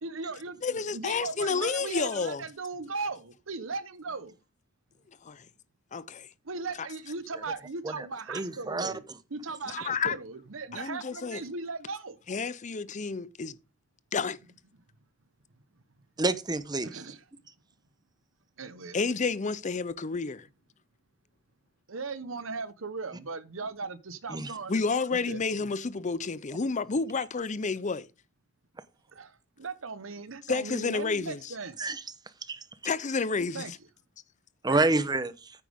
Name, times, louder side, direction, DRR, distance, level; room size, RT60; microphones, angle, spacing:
voice 1, 0.0-4.4 6.4-12.2 16.8-17.2 18.6-19.0 21.9-24.8 25.1-25.7 29.1-31.8 33.5-33.7 34.7-34.9, right 4 dB, 80° right, 1.0 m, -38 dB
voice 2, 0.6-2.4 5.1-5.5 5.9-6.3 6.8-6.9 9.7-10.2 10.7-11.4 12.3-13.6 14.1-14.4 18.9-20.5 24.7-28.1 30.5-31.5 32.8-33.7, left 4 dB, 40° left, 0.6 m, -30 dB
voice 3, 8.3-8.9 16.2-16.9 24.3-24.5 31.8-32.0 32.5-32.6 34.6-35.3, right 2 dB, 20° right, 0.9 m, -27 dB
9.3 x 8.7 x 3.6 m
head